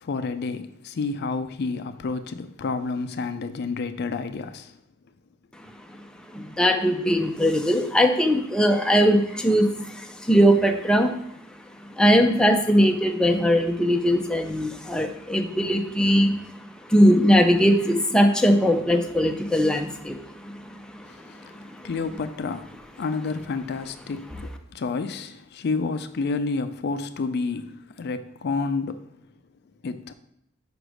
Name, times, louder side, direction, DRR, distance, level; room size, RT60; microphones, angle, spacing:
voice 1, 0.0-4.7 21.8-22.7 23.0-24.3 24.7-29.0 29.8-30.1, left 4 dB, 55° left, 0.4 m, -29 dB
voice 2, 6.3-11.2 12.0-16.6 16.9-20.8 21.2-21.3 21.7-21.9, equal, 5° left, 0.5 m, -20 dB
5.1 x 4.9 x 6.2 m
head